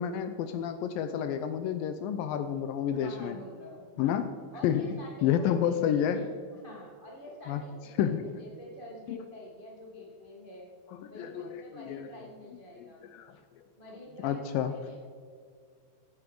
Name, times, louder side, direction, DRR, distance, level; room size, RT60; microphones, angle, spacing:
voice 1, 0.0-3.4 4.0-4.3 4.6-4.8 5.2-6.2 7.5-7.6 8.0-8.2 9.1-9.2 10.9-12.1 12.8-13.3 14.2-14.7, left 9 dB, 85° left, 9 dB, 2.1 m, -30 dB
voice 2, 3.0-4.2 4.5-6.3 6.6-10.7 11.1-13.0 13.8-15.0, left 1 dB, 55° right, -3 dB, 0.5 m, -47 dB
16.5 x 9.0 x 4.6 m, 2.1 s
omnidirectional pair, 4.6 m